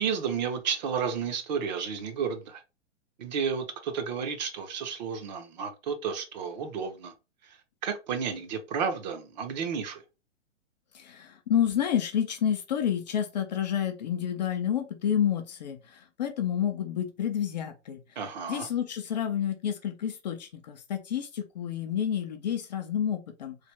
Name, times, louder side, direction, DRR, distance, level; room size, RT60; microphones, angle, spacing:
voice 1, 0.0-2.6 3.2-7.1 7.4-7.6 7.8-10.0 18.2-18.7, right 6 dB, 35° right, 0.6 m, -32 dB
voice 2, 10.9-18.0 18.5-23.6, left 9 dB, 35° left, 0.4 m, -29 dB
3.2 x 2.3 x 3.2 m
hypercardioid pair, 125°, 37 cm